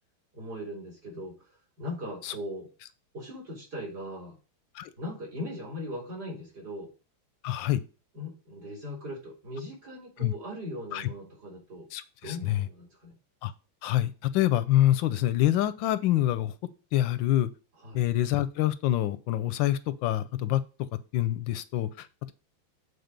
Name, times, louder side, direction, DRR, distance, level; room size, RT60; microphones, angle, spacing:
voice 1, 0.3-1.3 1.8-2.7 3.1-4.4 5.0-6.9 8.1-11.9 12.2-13.1 17.8-18.0, left 1 dB, 50° right, -3 dB, 3.9 m, -39 dB
voice 2, 7.4-7.8 10.2-10.3 10.9-11.1 11.9-12.7 13.4-13.5 13.8-16.5 16.9-17.5 17.9-20.6 21.1-22.3, left 13 dB, 75° left, 15 dB, 1.2 m, -26 dB
8.1 x 4.1 x 5.1 m, 0.34 s
omnidirectional pair, 2.3 m